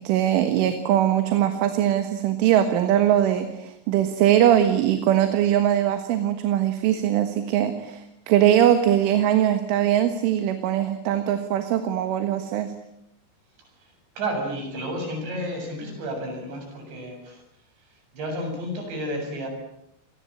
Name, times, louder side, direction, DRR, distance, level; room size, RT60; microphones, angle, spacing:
voice 1, 0.0-12.7, right 11 dB, 85° right, 8 dB, 4.1 m, -21 dB
voice 2, 14.2-17.4 18.1-19.5, right 1 dB, 65° right, 3 dB, 9.4 m, -31 dB
27.5 x 21.0 x 8.8 m, 0.80 s
omnidirectional pair, 5.5 m